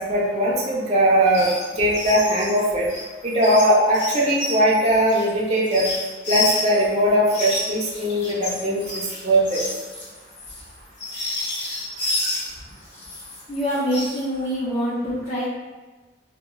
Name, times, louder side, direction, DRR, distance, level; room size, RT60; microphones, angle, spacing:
voice 1, 0.0-1.5 1.8-2.9 3.2-5.9 6.3-9.6, right 1 dB, 35° right, -4 dB, 0.5 m, -20 dB
sound 1, 1.3-1.6 1.9-6.9 7.3-12.5 12.9-14.2, left 2 dB, 70° left, 0.6 m, -30 dB
voice 2, 13.5-15.5, equal, 25° left, -13 dB, 0.6 m, -25 dB
2.2 x 2.1 x 3.6 m, 1.3 s
head